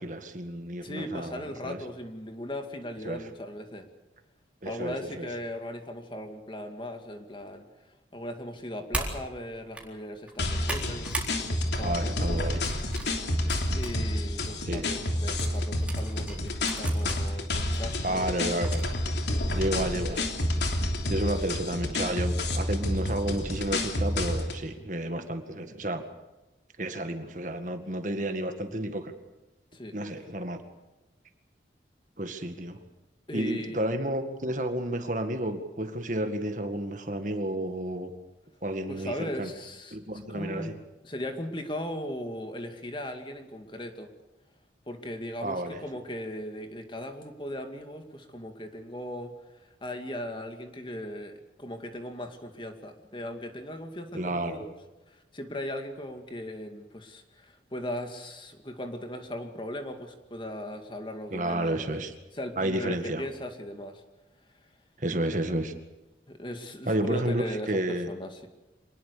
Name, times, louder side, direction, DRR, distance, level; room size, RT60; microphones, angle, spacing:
voice 1, 0.0-1.8 3.0-3.3 4.6-5.3 11.8-12.6 14.7-14.9 18.0-18.8 19.5-20.3 21.1-26.0 26.8-29.1 29.9-30.6 32.2-32.8 33.3-38.1 38.6-39.5 39.9-40.7 45.4-45.8 54.1-54.6 61.3-62.1 62.6-63.2 65.0-65.7 66.9-68.1, right 1 dB, 45° right, 7 dB, 2.0 m, -31 dB
voice 2, 0.8-3.9 4.7-7.7 8.1-12.5 13.2-13.3 13.7-18.4 29.7-30.0 33.3-33.8 38.9-40.0 40.3-40.7 41.0-44.1 44.9-49.3 49.6-54.7 55.1-61.7 62.4-64.0 66.3-68.4, left 1 dB, 25° left, 5 dB, 2.3 m, -38 dB
sound 1, 8.9-9.2 9.6-9.9 10.3-11.3 11.7-12.0 12.6-13.9 14.4-14.5 15.4-17.2 17.7-17.8 18.6-19.0, right 2 dB, 5° right, 3.9 m, -37 dB
sound 2, 10.4-24.6, left 1 dB, 75° left, 3.2 m, -29 dB
26.0 x 20.0 x 6.9 m, 1.1 s
head